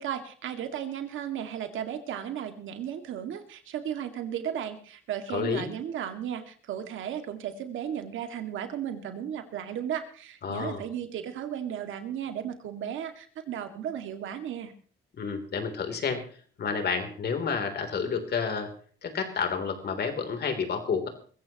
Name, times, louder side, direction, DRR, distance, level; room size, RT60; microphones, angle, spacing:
voice 1, 0.0-14.7, right 9 dB, 80° right, 7 dB, 2.1 m, -35 dB
voice 2, 5.3-5.7 10.4-10.8 15.2-16.2 16.6-18.7 19.0-21.1, left 5 dB, 55° left, 6 dB, 3.4 m, -30 dB
22.5 x 14.5 x 3.0 m, 0.44 s
cardioid pair, 90°, 20 cm